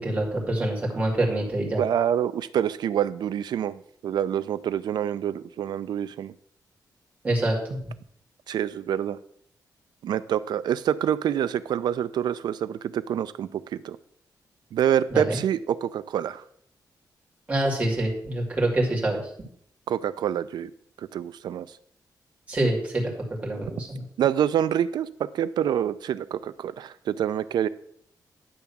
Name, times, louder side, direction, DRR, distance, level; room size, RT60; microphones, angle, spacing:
voice 1, 0.0-1.8 7.2-7.8 15.1-15.4 17.5-19.2 22.5-23.1 23.4-24.0, right 1 dB, 20° right, -2 dB, 2.2 m, -25 dB
voice 2, 1.8-6.3 8.5-9.2 10.0-14.0 14.7-16.4 19.9-20.7 21.1-21.7 24.2-27.7, right 9 dB, 75° right, 15 dB, 0.4 m, -26 dB
10.0 x 3.5 x 7.0 m, 0.66 s
wide cardioid pair, 175°, 7 cm